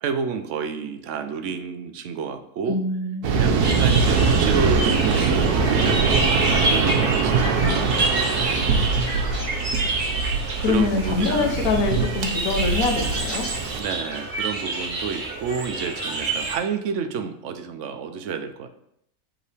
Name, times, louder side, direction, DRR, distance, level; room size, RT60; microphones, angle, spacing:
voice 1, 0.0-2.8 3.4-7.4 10.6-11.8 13.7-18.7, right 6 dB, 65° right, 8 dB, 0.8 m, -30 dB
voice 2, 2.7-3.7 7.6-8.1 8.5-8.8 10.6-13.5, left 4 dB, 70° left, 3 dB, 1.3 m, -25 dB
Waves surf, 3.2-13.8, right 5 dB, 90° right, 1.3 m, -22 dB
sound 1, 3.6-16.6, right 2 dB, 35° right, 1.1 m, -28 dB
8.0 x 3.8 x 3.3 m, 0.75 s
omnidirectional pair, 1.6 m